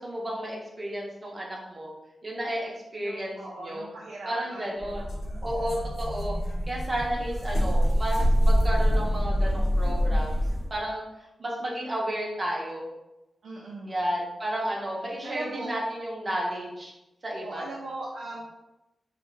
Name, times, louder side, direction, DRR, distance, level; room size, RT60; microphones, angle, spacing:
voice 1, 0.0-1.9 2.2-3.9 4.3-5.0 5.4-6.4 6.7-10.4 10.7-11.0 11.4-12.9 13.9-16.9 17.2-17.7, right 1 dB, 30° right, -3 dB, 0.6 m, -32 dB
voice 2, 3.0-5.0 13.4-14.0 15.2-15.7 17.2-18.5, right 2 dB, 85° right, -4 dB, 0.4 m, -39 dB
sound 1, 4.8-10.7, equal, 65° left, 0.6 m, -25 dB
2.5 x 2.1 x 3.7 m, 0.97 s
wide cardioid pair, 115°, 0 cm